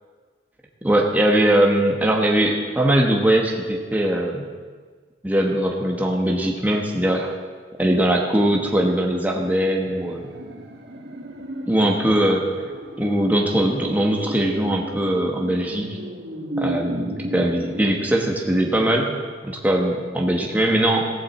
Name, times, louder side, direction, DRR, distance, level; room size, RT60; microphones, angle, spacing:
voice 1, 0.8-4.5 5.2-7.3 7.8-10.3 11.7-12.5 13.0-15.9 16.6-21.1, right 1 dB, 10° right, 0 dB, 1.3 m, -21 dB
sound 1, 9.8-19.0 19.3-19.4, right 1 dB, 75° right, 1.7 m, -34 dB
16.0 x 15.0 x 4.4 m, 1.5 s
head